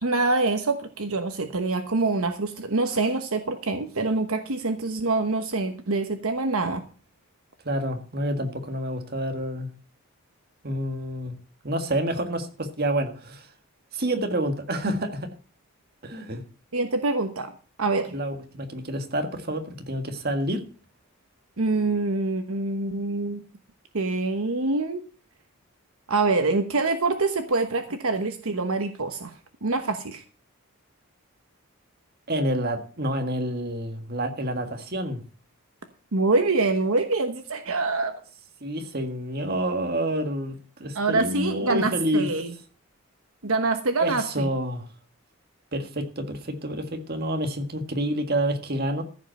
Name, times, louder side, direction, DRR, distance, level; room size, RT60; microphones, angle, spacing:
voice 1, 0.0-6.8 16.7-17.5 17.8-18.1 21.6-23.4 23.9-25.0 26.1-29.3 29.6-30.2 36.1-38.2 40.9-42.5 43.4-44.5, right 3 dB, 75° right, 1.1 m, -25 dB
voice 2, 7.6-9.7 10.6-11.4 11.6-13.5 13.9-15.3 16.0-16.4 18.1-20.6 32.3-35.2 38.6-42.3 44.0-44.9 45.7-49.0, right 1 dB, 45° right, 1.7 m, -28 dB
14.5 x 5.4 x 7.6 m
head